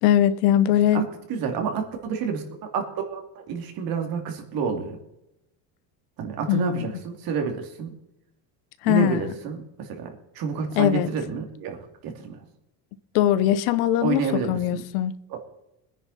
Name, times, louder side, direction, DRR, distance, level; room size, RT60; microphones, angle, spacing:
voice 1, 0.0-1.0 6.5-6.9 8.8-9.2 10.8-11.1 13.1-15.1, left 11 dB, 80° left, 1.0 m, -21 dB
voice 2, 1.3-2.4 2.7-5.0 6.2-7.9 8.8-11.8 12.0-12.4 14.0-14.8 15.3-15.4, right 6 dB, 50° right, 2.9 m, -29 dB
21.0 x 9.9 x 4.2 m
cardioid pair, 145°, 44 cm